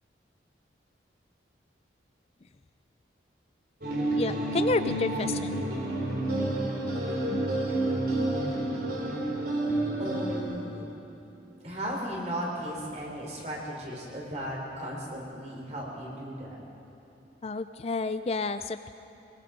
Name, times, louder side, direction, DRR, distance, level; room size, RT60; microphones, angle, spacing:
sound 1, 3.8-10.4, right 1 dB, 60° right, 3.9 m, -29 dB
voice 1, 4.1-5.5 17.4-18.9, left 3 dB, 35° left, 11 dB, 0.4 m, -30 dB
voice 2, 10.0-10.8 11.6-16.6, equal, 40° right, -2 dB, 4.6 m, -36 dB
23.5 x 21.5 x 5.3 m, 2.9 s
head